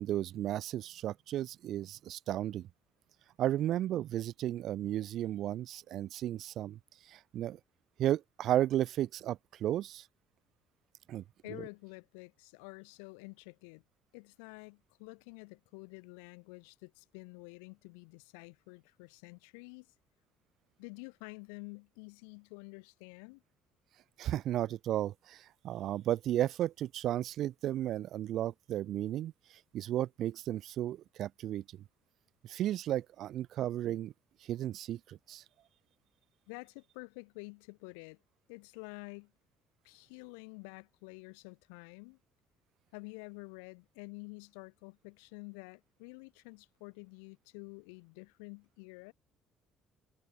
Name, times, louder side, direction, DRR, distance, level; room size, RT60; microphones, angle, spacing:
voice 1, 0.0-2.7 3.4-6.8 7.1-7.6 8.0-10.0 11.1-11.2 24.2-29.3 29.7-31.6 32.4-34.1 34.5-35.4, right 12 dB, 65° right, 0.4 m, -34 dB
voice 2, 11.4-13.8 14.1-19.9 20.8-23.4 36.5-38.2 38.5-39.3 39.8-42.2 42.9-49.1, left 37 dB, 85° left, 2.7 m, -49 dB
supercardioid pair, 65°, 0 cm